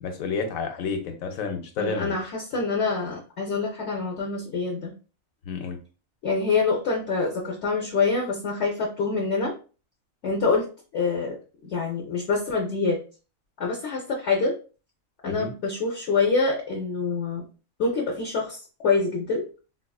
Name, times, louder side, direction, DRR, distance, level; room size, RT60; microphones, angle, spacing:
voice 1, 0.0-2.2 5.5-5.8 15.2-15.5, left 5 dB, 85° left, 6 dB, 1.1 m, -30 dB
voice 2, 1.8-4.9 6.2-9.5 10.2-10.6 10.9-11.4 11.6-13.0 13.6-14.5 15.2-17.4 17.8-19.4, left 4 dB, 60° left, -1 dB, 0.9 m, -26 dB
4.0 x 2.4 x 2.3 m, 0.36 s
omnidirectional pair, 1.4 m